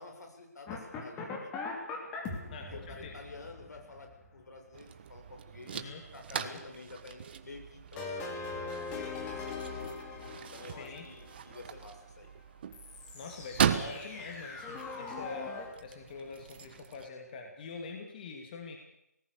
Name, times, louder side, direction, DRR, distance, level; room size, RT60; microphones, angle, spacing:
voice 1, 0.0-1.5 2.2-5.8 6.1-9.9 10.5-12.3, left 3 dB, 80° left, 3 dB, 7.2 m, -50 dB
sound 1, 0.7-4.7 8.0-11.7 12.7-15.7, left 4 dB, 15° left, 3.1 m, -41 dB
voice 2, 2.5-3.1 5.7-6.0 6.3-6.6 10.7-11.0 13.1-15.6 15.8-18.8, left 4 dB, 30° left, 3 dB, 2.9 m, -44 dB
sound 2, 4.7-17.1, right 8 dB, 35° right, 1.4 m, -38 dB
25.0 x 19.0 x 6.9 m, 0.84 s
hypercardioid pair, 160°, 9 cm